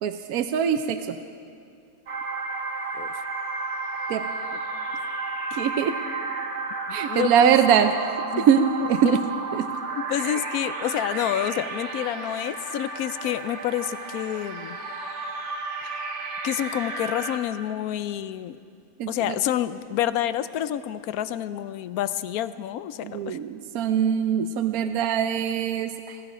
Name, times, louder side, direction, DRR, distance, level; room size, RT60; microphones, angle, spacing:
voice 1, 0.0-1.2 4.1-4.3 5.5-6.0 6.9-7.9 8.4-9.2 9.5-9.6 10.2-10.4 19.0-19.4 23.0-26.2, right 8 dB, 80° right, 8 dB, 1.1 m, -23 dB
sound 1, 2.1-17.4, right 3 dB, 55° right, 1.5 m, -32 dB
voice 2, 6.9-7.6 8.3-8.5 9.0-9.2 10.0-14.8 15.8-16.1 16.4-18.6 19.1-23.4, left 11 dB, 85° left, 13 dB, 1.1 m, -28 dB
19.0 x 14.5 x 5.0 m, 2.3 s
omnidirectional pair, 1.5 m